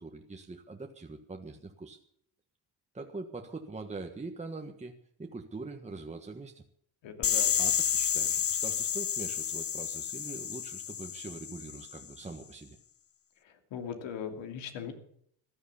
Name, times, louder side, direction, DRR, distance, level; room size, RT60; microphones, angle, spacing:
voice 1, 0.0-2.0 2.9-4.9 5.2-6.6 7.6-12.8, right 3 dB, 15° right, 3 dB, 1.4 m, -43 dB
voice 2, 7.0-7.5 13.4-14.9, left 7 dB, 80° left, 6 dB, 2.9 m, -39 dB
sound 1, 7.2-12.0, left 8 dB, 30° left, 0.7 m, -30 dB
15.5 x 11.0 x 7.1 m, 0.65 s
cardioid pair, 110°, 44 cm